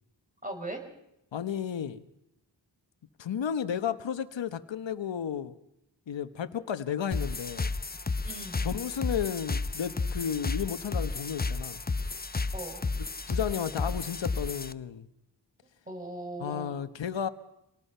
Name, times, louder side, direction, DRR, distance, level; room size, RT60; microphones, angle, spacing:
voice 1, 0.4-0.8 8.2-8.7 12.5-12.8 15.9-16.8, right 1 dB, 15° right, 3 dB, 6.3 m, -39 dB
voice 2, 1.3-2.0 3.2-5.6 6.1-7.7 8.6-11.8 13.0-15.0 16.4-17.3, left 8 dB, 75° left, 12 dB, 1.3 m, -33 dB
sound 1, 7.1-14.7, left 3 dB, 20° left, 0.7 m, -32 dB
27.0 x 19.0 x 5.6 m, 0.84 s
cardioid pair, 65°, 45 cm